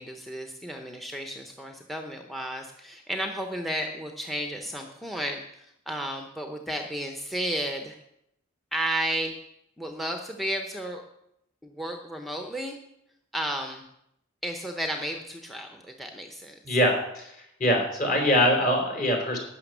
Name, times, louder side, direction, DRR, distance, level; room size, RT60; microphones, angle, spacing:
voice 1, 0.0-8.0 8.7-9.3 9.8-11.0 11.6-12.8 13.3-13.8 14.4-16.5, right 1 dB, ahead, 4 dB, 0.8 m, -33 dB
voice 2, 16.7-17.3 17.6-19.4, equal, 45° left, 2 dB, 3.6 m, -23 dB
12.0 x 6.3 x 9.2 m, 0.78 s
head